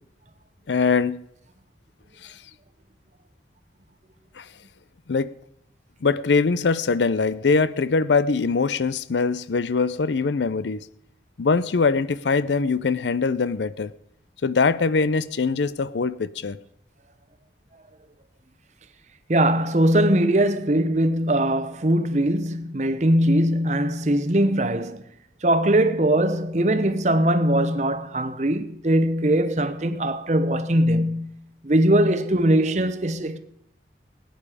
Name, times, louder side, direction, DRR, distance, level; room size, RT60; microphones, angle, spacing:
voice 1, 0.7-1.2 2.2-2.3 4.4-4.5 5.1-5.3 6.0-10.9 11.4-13.9 14.4-16.6, left 4 dB, 85° left, 0.5 m, -22 dB
voice 2, 19.3-25.0 25.4-31.3 31.6-33.4, right 1 dB, 40° right, 0.8 m, -21 dB
19.5 x 9.2 x 4.9 m
head